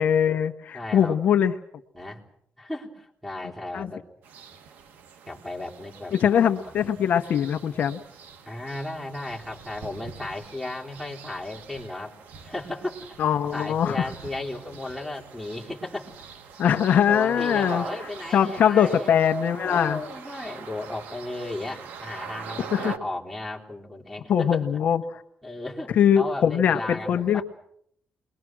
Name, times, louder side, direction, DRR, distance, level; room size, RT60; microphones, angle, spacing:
voice 1, 0.0-1.5 3.7-3.9 6.1-8.0 13.2-14.1 16.6-17.8 18.3-20.0 22.7-22.9 24.3-25.2 26.0-27.4, left 8 dB, 55° left, 6 dB, 1.1 m, -22 dB
voice 2, 0.7-1.2 1.9-2.2 2.6-4.0 5.3-6.4 6.6-7.0 8.5-12.1 12.4-13.0 13.5-16.2 16.6-19.1 19.6-24.7 25.4-27.4, left 2 dB, ahead, -1 dB, 3.9 m, -35 dB
sound 1, 4.2-23.0, right 6 dB, 85° right, 1.7 m, -43 dB
28.5 x 22.0 x 6.2 m, 0.70 s
cardioid pair, 150°, 3 cm